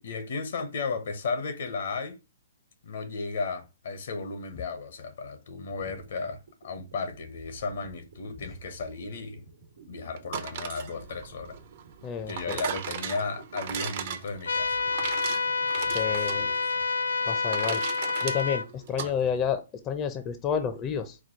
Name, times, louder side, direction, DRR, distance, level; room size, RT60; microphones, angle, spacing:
voice 1, 0.0-2.2 2.8-9.5 9.9-11.6 12.3-14.8 15.9-16.7 19.0-19.3, left 4 dB, 65° left, 0.8 m, -35 dB
sound 1, 6.5-16.9, right 4 dB, 85° right, 1.2 m, -52 dB
sound 2, 10.2-19.1, right 8 dB, 50° right, 0.6 m, -37 dB
voice 2, 12.0-12.6 15.9-16.5 17.2-17.8 18.2-21.2, left 7 dB, 25° left, 0.5 m, -30 dB
sound 3, 14.5-18.6, left 4 dB, 85° left, 0.3 m, -28 dB
4.5 x 2.2 x 4.3 m
hypercardioid pair, 135°, 0 cm